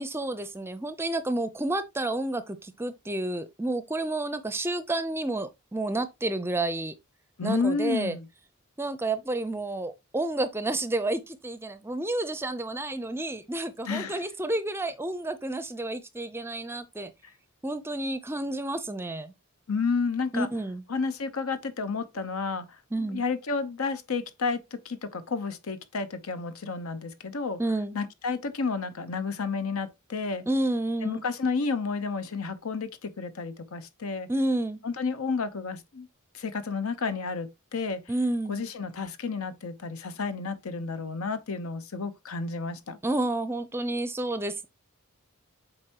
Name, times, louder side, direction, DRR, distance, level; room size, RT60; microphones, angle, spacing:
voice 1, 0.0-6.9 7.4-8.1 8.8-17.1 17.6-19.3 20.3-20.8 22.9-23.2 27.6-28.0 30.5-31.2 34.3-34.8 38.1-38.6 43.0-44.7, right 2 dB, 10° right, 0.5 m, -30 dB
voice 2, 7.4-8.3 13.8-14.2 19.7-20.5 20.9-22.7 23.1-27.6 27.9-30.4 31.0-34.3 34.8-36.1 36.3-38.0 38.5-43.0, left 4 dB, 75° left, 0.8 m, -31 dB
7.9 x 4.4 x 2.9 m
head